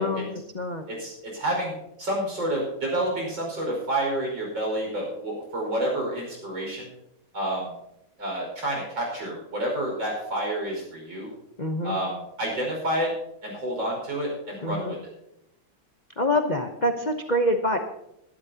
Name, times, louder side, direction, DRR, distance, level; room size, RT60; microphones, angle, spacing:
voice 1, 0.0-0.9 11.6-12.0 14.6-14.9 16.2-17.8, left 1 dB, 40° left, 4 dB, 0.6 m, -26 dB
voice 2, 0.9-1.7 2.0-6.9 7.3-7.7 8.2-11.3 11.8-13.1 13.4-15.0, right 1 dB, 70° right, -1 dB, 6.0 m, -29 dB
22.5 x 11.5 x 2.9 m, 0.83 s
omnidirectional pair, 2.2 m